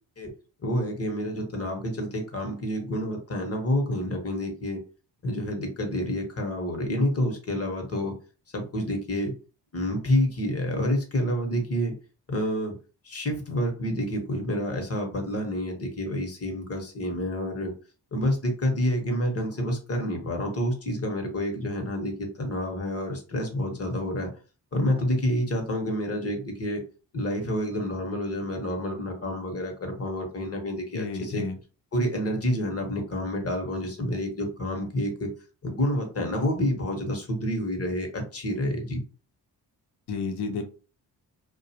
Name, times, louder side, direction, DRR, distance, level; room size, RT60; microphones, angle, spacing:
voice 1, 0.6-4.8 5.2-8.1 8.5-9.3 9.7-11.9 12.3-12.7 13.0-17.7 18.1-24.3 24.7-26.8 27.1-31.4 31.9-35.3 35.6-39.0, equal, 35° left, 3 dB, 1.0 m, -28 dB
voice 2, 30.9-31.5 40.1-40.6, left 4 dB, 65° left, 6 dB, 0.8 m, -31 dB
2.3 x 2.2 x 2.8 m, 0.36 s
supercardioid pair, 50°, 43 cm